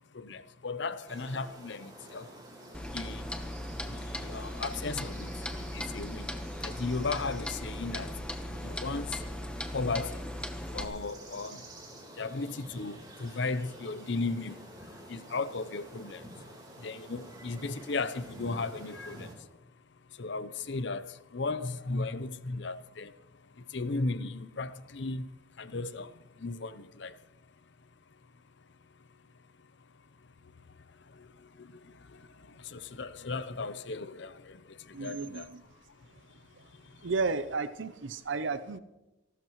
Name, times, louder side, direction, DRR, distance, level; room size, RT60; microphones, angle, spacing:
voice 1, 0.2-2.2 2.9-3.2 4.2-5.3 5.7-6.2 6.6-8.1 8.6-9.1 9.7-10.2 10.7-11.6 12.2-14.6 15.1-16.2 16.8-19.3 20.2-21.0 21.3-23.1 23.7-25.2 25.6-26.1 26.4-27.1 32.7-34.3 35.0-35.4, left 3 dB, 60° left, 0.7 m, -35 dB
sound 1, 1.1-19.3, right 1 dB, 20° right, 3.8 m, -49 dB
Clock, 2.7-10.9, left 1 dB, 5° left, 1.0 m, -38 dB
voice 2, 34.9-35.6 36.1-36.2 36.5-36.7 37.0-38.8, right 4 dB, 70° right, 0.6 m, -33 dB
28.5 x 12.5 x 3.1 m
head